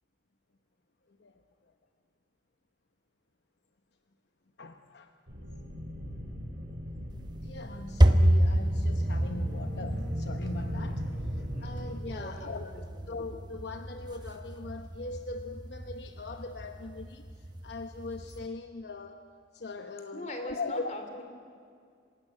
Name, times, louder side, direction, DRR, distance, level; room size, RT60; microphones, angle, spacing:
voice 1, 4.6-5.1 7.4-19.2 19.5-20.9, left 3 dB, 70° left, 7 dB, 0.9 m, -41 dB
sound 1, 5.3-11.9, equal, 80° right, 5.5 m, -38 dB
sound 2, 7.1-18.5, right 1 dB, 25° right, 0.9 m, -30 dB
voice 2, 12.1-12.8 20.1-21.2, left 1 dB, 40° left, 5 dB, 3.1 m, -41 dB
26.5 x 16.5 x 9.9 m, 2.3 s
head